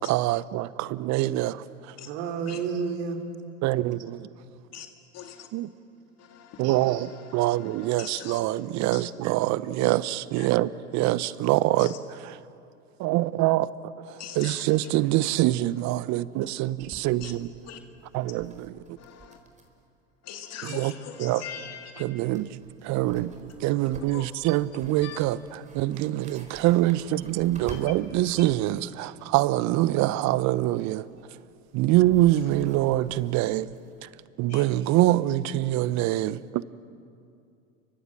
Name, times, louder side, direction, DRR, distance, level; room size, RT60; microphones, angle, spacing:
voice 1, 0.0-1.6 3.6-4.3 5.5-5.7 6.6-11.9 12.2-12.4 13.0-17.5 18.1-18.7 20.7-20.9 21.2-21.4 22.0-22.5 22.8-23.3 23.6-31.1 31.7-33.7 34.0-34.1 34.4-36.6, right 15 dB, 45° right, 1.0 m, -25 dB
voice 2, 2.1-3.2 6.6-7.1 16.8-16.9 20.6-20.9, right 6 dB, 65° right, 3.7 m, -32 dB
voice 3, 5.1-5.5 6.2-8.4 8.9-9.1 10.4-10.5 11.7-12.0 14.2-14.9 17.2-17.3 17.7-17.8 19.0-19.4 20.2-22.1 24.1-24.4 25.0-25.2 27.7-27.8 34.5-34.6, left 9 dB, 40° left, 2.2 m, -42 dB
sound 1, 15.9-16.0 16.3-19.9 20.1-20.2 21.9-22.0 22.3-28.7 30.5-34.2, right 2 dB, 20° right, 4.6 m, -49 dB
29.5 x 24.5 x 7.7 m
hypercardioid pair, 85°, 38 cm